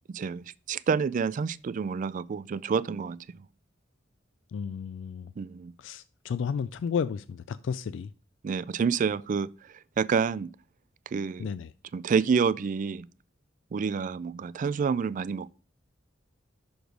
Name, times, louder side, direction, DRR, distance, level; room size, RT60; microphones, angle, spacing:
voice 1, 0.1-3.2 5.4-5.7 8.4-9.5 10.0-10.5 11.1-11.5 11.9-13.1 13.7-15.5, right 6 dB, 45° right, 0.3 m, -28 dB
voice 2, 4.5-5.3 5.8-8.1 11.4-11.7, left 6 dB, 70° left, 0.3 m, -32 dB
6.1 x 5.0 x 5.1 m
head